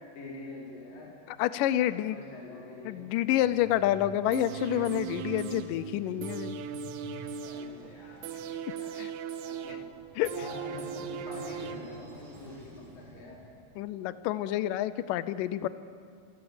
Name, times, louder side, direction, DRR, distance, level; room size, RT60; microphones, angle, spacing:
voice 1, 0.1-1.1 2.0-3.0 7.4-9.8 10.3-13.4, left 2 dB, 60° left, -4 dB, 5.8 m, -45 dB
voice 2, 1.3-2.2 2.9-6.6 9.0-9.1 10.2-10.3 13.8-15.7, left 13 dB, 85° left, 15 dB, 1.9 m, -28 dB
sound 1, 3.1-13.6, right 2 dB, 35° right, 4.8 m, -50 dB
sound 2, 4.3-12.3 12.6-12.7, right 8 dB, 80° right, 1.7 m, -39 dB
26.5 x 16.0 x 8.0 m, 2.2 s
omnidirectional pair, 4.6 m